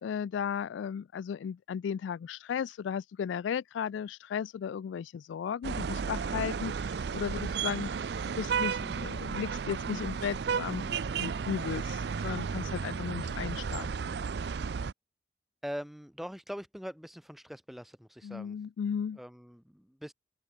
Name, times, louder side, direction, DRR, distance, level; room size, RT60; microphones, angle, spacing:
voice 1, 0.0-13.9 18.2-19.2, left 7 dB, 80° left, 0.3 m, -35 dB
sound 1, 5.6-14.9, right 6 dB, 60° right, 0.4 m, -33 dB
voice 2, 15.6-18.6 19.2-20.1, equal, ahead, 0.5 m, -42 dB
open air
head